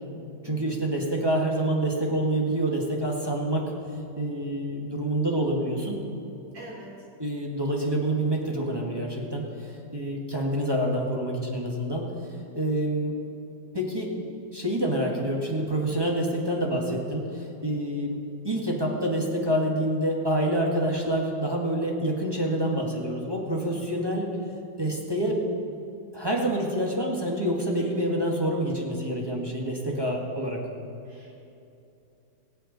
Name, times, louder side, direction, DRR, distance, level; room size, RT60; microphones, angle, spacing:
voice 1, 0.4-3.7 4.1-6.0 7.2-12.1 12.5-13.1 13.7-14.1 14.5-18.2 18.4-24.3 24.8-25.4 26.1-30.6, right 1 dB, 15° right, -2 dB, 1.4 m, -27 dB
voice 2, 6.5-6.9 31.1-31.4, right 1 dB, 75° right, -4 dB, 3.7 m, -44 dB
23.0 x 7.9 x 4.0 m, 2.7 s
omnidirectional pair, 2.0 m